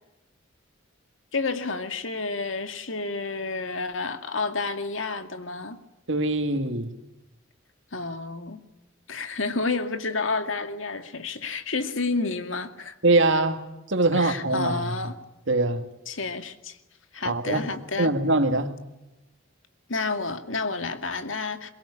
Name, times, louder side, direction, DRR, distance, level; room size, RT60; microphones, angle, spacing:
voice 1, 1.3-5.8 7.9-8.6 9.1-13.0 14.1-15.2 16.1-16.8 17.1-18.1 19.9-21.7, left 3 dB, 75° left, 2.2 m, -30 dB
voice 2, 6.1-6.9 13.0-14.9 15.5-15.9 17.2-17.7 18.0-18.7, right 2 dB, 65° right, 2.3 m, -23 dB
23.0 x 22.0 x 9.9 m
head